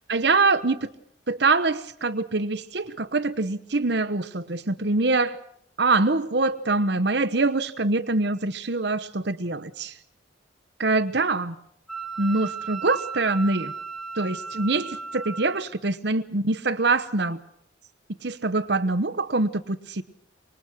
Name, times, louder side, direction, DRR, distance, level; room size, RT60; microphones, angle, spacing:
voice 1, 0.1-0.9 1.3-5.4 5.8-9.9 10.8-11.6 12.2-13.7 14.2-17.4 18.2-20.0, right 3 dB, 60° right, 11 dB, 1.0 m, -24 dB
Wind instrument woodwind instrument, 11.9-15.6, right 5 dB, 5° left, 1.6 m, -35 dB
25.0 x 21.5 x 6.2 m, 0.70 s
head